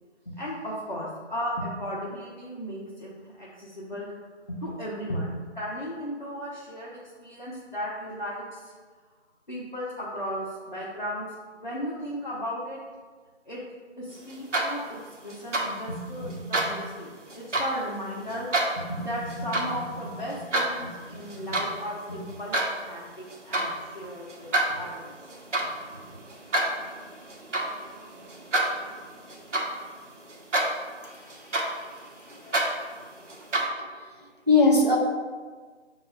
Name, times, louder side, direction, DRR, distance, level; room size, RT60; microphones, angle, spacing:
voice 1, 0.3-4.1 4.5-8.7 9.5-11.3 11.6-12.8 13.5-13.6 14.0-18.5 18.8-25.1, equal, 40° left, -7 dB, 0.5 m, -35 dB
sound 1, 14.3-14.9 15.3-15.7 16.3-16.7 17.3-17.7 18.3-18.7 19.3-19.7 20.1-20.7 21.2-21.7 22.0-22.7 23.3-23.7 24.3-30.0 30.3-30.9 31.3-33.6, right 2 dB, 80° right, 0.9 m, -28 dB
voice 2, 31.0-32.0 32.4-32.6 34.0-34.1 34.5-35.0, left 3 dB, 35° right, -2 dB, 0.5 m, -23 dB
4.6 x 2.3 x 3.1 m, 1.5 s
figure-of-eight pair, 170°, 35 cm